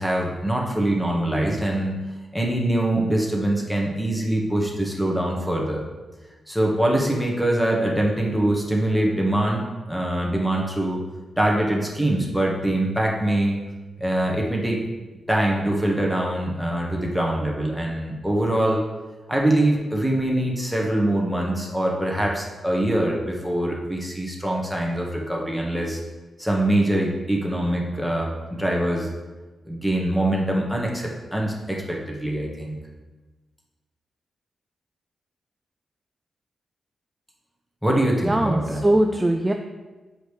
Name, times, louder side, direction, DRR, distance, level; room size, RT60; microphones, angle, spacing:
voice 1, 0.0-2.0 2.3-5.8 6.5-9.6 9.9-11.0 11.4-13.6 14.0-14.8 15.3-18.8 19.3-26.0 26.4-29.1 29.7-32.7 37.8-38.8, right 1 dB, 5° left, -1 dB, 1.4 m, -23 dB
voice 2, 38.2-39.5, right 1 dB, 15° right, 4 dB, 0.4 m, -21 dB
7.7 x 5.1 x 3.2 m, 1.2 s
cardioid pair, 85°, 0 cm